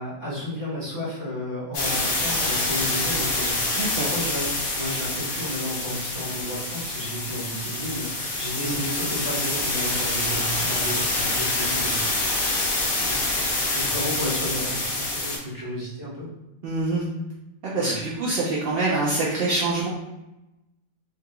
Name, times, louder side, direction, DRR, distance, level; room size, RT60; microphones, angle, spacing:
voice 1, 0.0-4.5 4.8-12.4 13.0-13.4 13.7-16.3 17.7-18.0, equal, 15° right, -7 dB, 1.2 m, -33 dB
sound 1, 1.7-15.4, left 2 dB, 70° left, 1.2 m, -26 dB
voice 2, 3.8-4.1 8.6-8.8 16.6-17.0 17.6-19.9, right 2 dB, 70° right, -5 dB, 0.5 m, -25 dB
3.7 x 2.8 x 2.3 m, 0.95 s
omnidirectional pair, 1.6 m